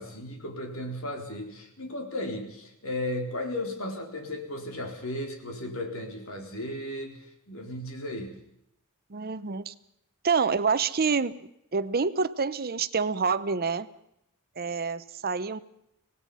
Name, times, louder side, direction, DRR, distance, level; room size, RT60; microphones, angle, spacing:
voice 1, 0.0-8.4, left 1 dB, 70° left, 3 dB, 4.0 m, -35 dB
voice 2, 9.1-9.7 10.2-11.3 11.7-13.9 14.6-15.6, right 5 dB, 45° right, 14 dB, 0.8 m, -27 dB
25.0 x 18.0 x 5.6 m, 0.78 s
head